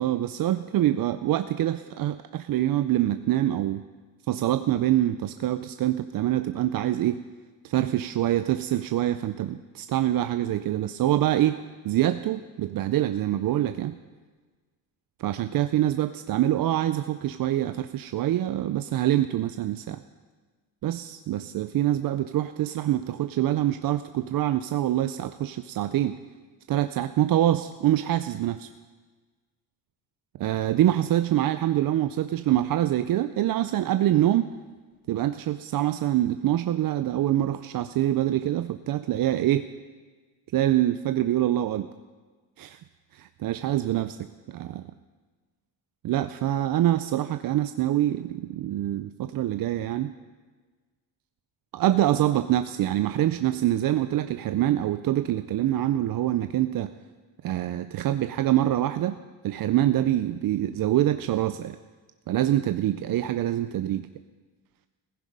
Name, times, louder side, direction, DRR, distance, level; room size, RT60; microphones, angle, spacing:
voice 1, 0.0-3.8 4.3-7.2 7.6-11.6 11.8-14.0 15.2-20.0 20.8-26.2 26.7-28.7 30.4-34.5 35.1-39.7 40.5-41.9 42.6-42.8 43.1-44.2 44.5-44.8 46.0-50.1 51.7-56.9 57.4-59.2 59.4-61.8 62.3-64.1, right 13 dB, 55° right, 10 dB, 0.5 m, -25 dB
16.0 x 15.0 x 5.4 m, 1.4 s
cardioid pair, 180°, 43 cm